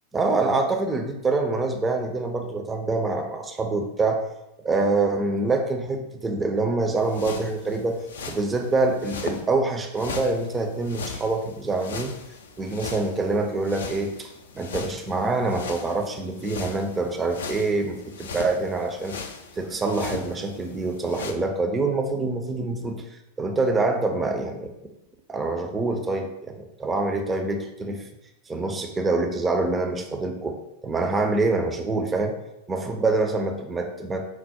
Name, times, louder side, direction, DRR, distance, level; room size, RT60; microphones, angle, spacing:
voice 1, 0.1-4.2 4.6-8.0 8.3-12.1 12.6-19.2 19.6-23.0 23.4-24.7 25.3-28.0 28.5-30.6 30.8-32.4 32.7-34.3, right 3 dB, 15° right, 4 dB, 0.5 m, -25 dB
sound 1, 7.0-9.4 9.9-21.3, left 5 dB, 65° left, 0.4 m, -39 dB
4.6 x 2.0 x 4.1 m, 0.88 s
figure-of-eight pair, 90°, 0 cm